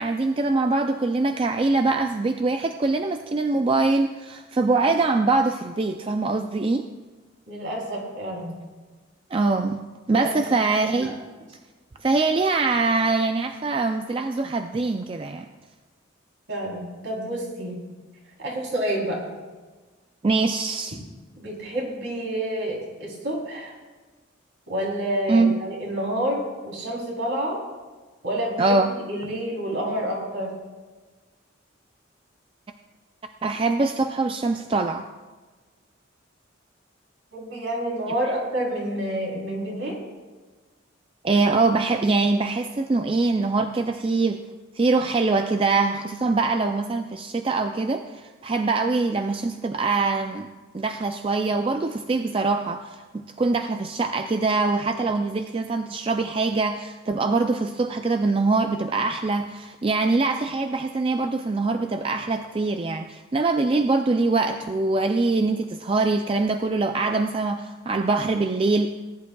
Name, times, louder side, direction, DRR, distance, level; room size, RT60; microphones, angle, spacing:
voice 1, 0.0-6.8 9.3-9.8 10.1-11.1 12.0-15.5 20.2-21.0 25.3-25.7 28.6-28.9 33.4-35.1 41.2-44.4 44.7-50.5 50.7-68.9, right 3 dB, 25° right, 6 dB, 0.3 m, -23 dB
voice 2, 7.5-8.6 10.1-10.3 10.6-10.7 11.0-11.1 16.5-17.8 18.4-19.2 21.4-23.7 24.7-27.6 28.2-30.5 37.3-40.0, right 1 dB, 65° right, -3 dB, 3.5 m, -29 dB
19.5 x 11.0 x 2.3 m, 1.3 s
head